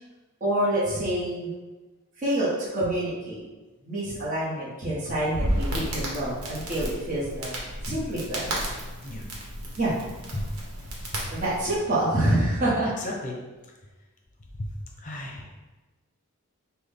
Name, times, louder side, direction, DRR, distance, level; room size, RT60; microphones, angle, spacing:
voice 1, 0.4-1.5 2.2-3.4 3.8-7.5 7.8-8.6 9.8-9.9 11.3-12.9, right 1 dB, 35° right, -9 dB, 1.2 m, -27 dB
Crackle, 5.1-11.8, right 1 dB, 75° right, 1.1 m, -33 dB
voice 2, 13.0-13.4 14.5-15.5, left 1 dB, 35° left, 0 dB, 0.7 m, -35 dB
6.0 x 2.3 x 3.5 m, 1.2 s
head